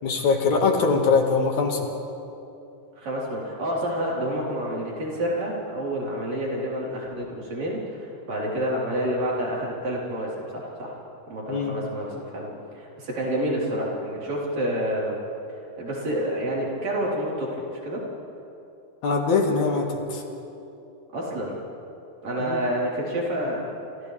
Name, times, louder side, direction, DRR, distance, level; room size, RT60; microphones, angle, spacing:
voice 1, 0.0-1.9 11.5-11.7 19.0-20.2 22.4-22.6, left 4 dB, 70° left, 1 dB, 3.2 m, -22 dB
voice 2, 3.0-11.0 11.3-12.5 12.7-15.2 15.8-18.1 21.1-21.6 22.2-23.7, equal, 65° right, -5 dB, 5.4 m, -28 dB
30.0 x 26.0 x 3.5 m, 2.8 s
omnidirectional pair, 3.4 m